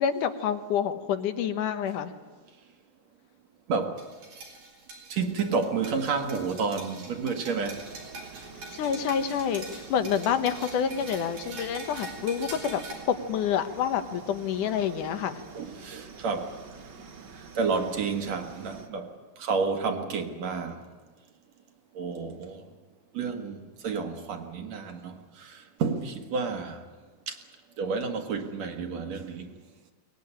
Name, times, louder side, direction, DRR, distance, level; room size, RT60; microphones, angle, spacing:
voice 1, 0.0-2.1 8.8-12.8 13.1-15.4, left 8 dB, 75° left, 2.6 m, -28 dB
voice 2, 3.7-4.0 5.1-7.9 15.5-16.6 17.6-20.8 21.9-22.6 23.1-26.8 27.3-27.4 27.8-29.5, right 5 dB, 60° right, 2.6 m, -30 dB
sound 1, 4.0-12.9, right 2 dB, 85° right, 6.5 m, -44 dB
sound 2, 7.6-18.9, right 5 dB, 40° right, 1.8 m, -47 dB
23.0 x 19.0 x 10.0 m
omnidirectional pair, 3.8 m